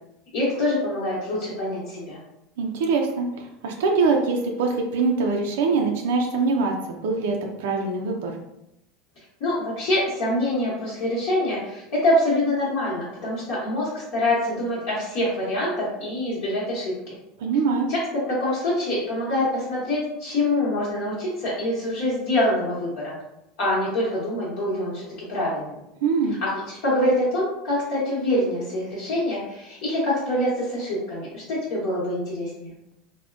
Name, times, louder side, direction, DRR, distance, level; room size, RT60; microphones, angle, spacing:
voice 1, 0.3-2.2 9.4-17.1 17.9-18.0 18.3-23.1 23.6-25.8 26.4-32.7, left 1 dB, 55° left, -7 dB, 1.0 m, -25 dB
voice 2, 2.6-8.3 17.4-17.9 26.0-26.4, right 4 dB, 80° right, 2 dB, 0.4 m, -23 dB
3.4 x 2.1 x 2.4 m, 0.86 s
supercardioid pair, 165°, 0 cm